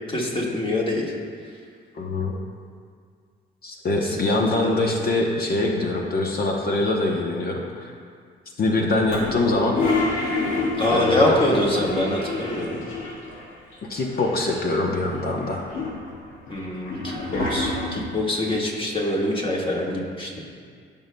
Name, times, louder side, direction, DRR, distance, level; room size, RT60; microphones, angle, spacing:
voice 1, 0.1-1.1 4.0-4.7 10.8-12.8 16.5-20.4, left 1 dB, 25° left, -3 dB, 1.6 m, -25 dB
voice 2, 1.9-2.3 3.6-7.9 8.6-9.8 10.9-11.4 13.9-15.7, left 2 dB, 50° left, 0 dB, 0.9 m, -23 dB
Toilet flush, 9.1-13.4 13.7-13.8 14.0-14.9 15.4-18.2, left 3 dB, 85° left, 1.9 m, -28 dB
14.0 x 5.4 x 2.2 m, 2.1 s
cardioid pair, 90°, 20 cm